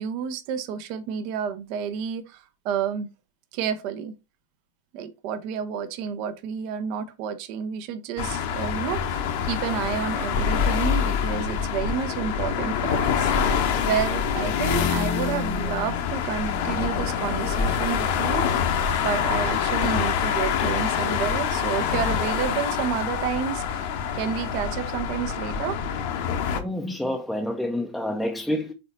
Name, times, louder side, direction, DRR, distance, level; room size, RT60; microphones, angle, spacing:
voice 1, 0.0-3.1 3.5-4.1 4.9-13.3 13.8-18.5 19.0-23.9 24.1-25.8, right 8 dB, 45° right, 0.9 m, -30 dB
sound 1, 8.2-26.6, left 7 dB, 50° left, 1.1 m, -25 dB
voice 2, 26.5-28.7, left 1 dB, ahead, 0.8 m, -28 dB
6.8 x 4.1 x 4.1 m
figure-of-eight pair, 90°, 0 cm